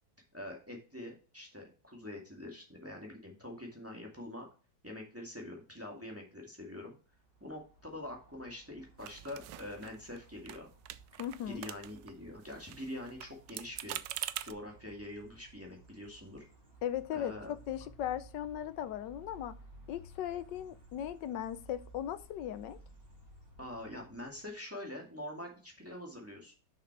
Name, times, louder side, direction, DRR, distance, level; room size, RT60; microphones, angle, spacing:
voice 1, 0.3-4.5 4.8-6.9 7.4-10.7 11.1-11.2 11.5-14.0 14.4-16.5 17.1-17.5 23.6-26.5, left 1 dB, 10° right, 2.1 m, -45 dB
sound 1, 7.0-24.6, right 2 dB, 30° right, 3.2 m, -57 dB
sound 2, 9.0-10.2 10.5-10.6 10.9-12.1 12.4-14.5, right 13 dB, 85° right, 1.2 m, -43 dB
voice 2, 11.2-11.6 16.8-19.5 19.9-22.8, left 10 dB, 85° left, 1.4 m, -38 dB
6.5 x 6.4 x 4.7 m
omnidirectional pair, 1.9 m